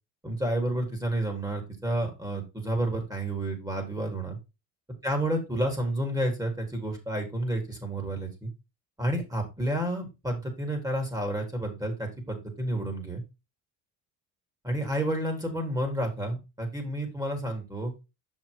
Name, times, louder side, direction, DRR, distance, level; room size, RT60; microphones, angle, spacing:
voice 1, 0.2-4.4 5.0-8.5 9.0-13.2 14.6-17.9, right 1 dB, 10° right, 3 dB, 4.1 m, -30 dB
7.0 x 6.5 x 4.0 m, 0.25 s
supercardioid pair, 85°, 39 cm